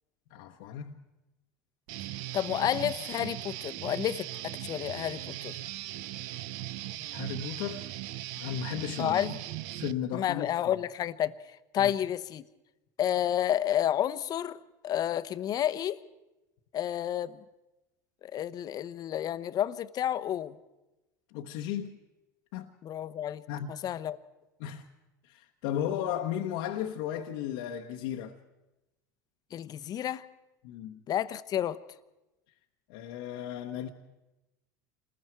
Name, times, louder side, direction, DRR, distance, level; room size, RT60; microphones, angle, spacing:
voice 1, 0.3-0.9 7.1-7.9 8.4-9.4 9.7-10.5 11.8-11.9 21.3-22.0 22.5-22.7 23.5-23.7 24.6-24.9 25.2-28.4 30.6-31.0 32.9-33.9, left 10 dB, 70° left, 1.1 m, -35 dB
Guitar, 1.9-9.9, right 15 dB, 65° right, 0.7 m, -39 dB
voice 2, 2.3-5.5 9.0-9.3 10.1-11.3 11.7-12.4 13.0-14.6 14.8-16.0 16.7-17.4 18.2-20.6 22.8-23.4 23.8-24.2 29.5-30.2 31.1-31.8, left 11 dB, 40° left, 0.9 m, -30 dB
27.5 x 20.5 x 4.6 m
hypercardioid pair, 85°, 10 cm